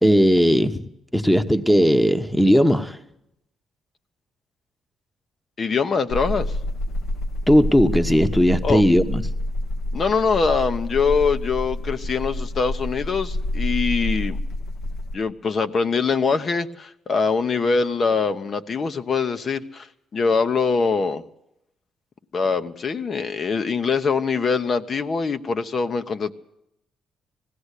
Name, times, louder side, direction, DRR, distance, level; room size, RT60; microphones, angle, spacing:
voice 1, 0.0-3.0 7.5-9.2, equal, 5° left, 1.1 m, -17 dB
voice 2, 5.6-6.5 8.6-8.8 9.9-14.4 15.1-19.9 20.1-21.2 22.3-26.3, left 5 dB, 45° left, 1.0 m, -23 dB
sound 1, 6.1-15.2, left 1 dB, 80° left, 1.8 m, -28 dB
19.5 x 16.5 x 8.3 m
cardioid pair, 90°, 0 cm